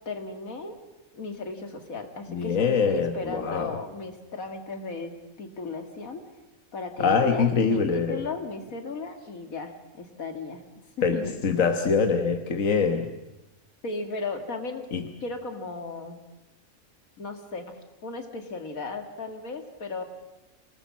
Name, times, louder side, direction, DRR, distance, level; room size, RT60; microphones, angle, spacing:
voice 1, 0.1-0.8 1.1-5.1 5.4-6.2 6.7-10.6 11.0-11.4 13.8-14.9 15.2-16.2 17.2-17.8 18.0-20.0, left 3 dB, 85° left, 6 dB, 2.6 m, -36 dB
voice 2, 2.3-3.7 7.0-8.2 11.0-13.1 14.9-15.0, left 5 dB, 70° left, 5 dB, 1.7 m, -24 dB
26.0 x 19.0 x 7.5 m, 0.98 s
omnidirectional pair, 1.4 m